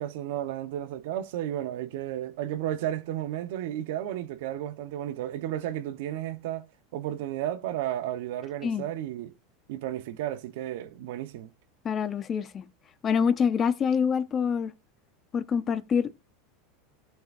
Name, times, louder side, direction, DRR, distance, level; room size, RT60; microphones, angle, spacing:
voice 1, 0.0-6.7 6.9-9.3 9.7-11.5, right 12 dB, 70° right, 0.9 m, -33 dB
voice 2, 11.8-12.6 13.0-14.7 15.3-16.1, left 6 dB, 25° left, 0.6 m, -26 dB
17.0 x 5.7 x 2.5 m
supercardioid pair, 155°, 0 cm